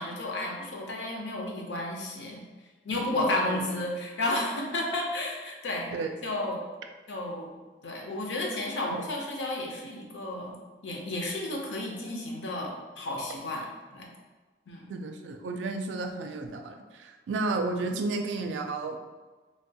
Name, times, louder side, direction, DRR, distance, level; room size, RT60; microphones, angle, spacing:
voice 1, 0.0-2.4 2.8-5.9 6.2-6.6 7.1-7.5 7.8-10.5 10.8-13.7 13.9-14.1 14.7-15.0, left 1 dB, 85° left, 0 dB, 0.6 m, -32 dB
voice 2, 2.9-3.9 5.9-6.1 14.9-19.0, right 3 dB, 90° right, 5 dB, 0.3 m, -33 dB
3.2 x 2.2 x 2.7 m, 1.3 s
head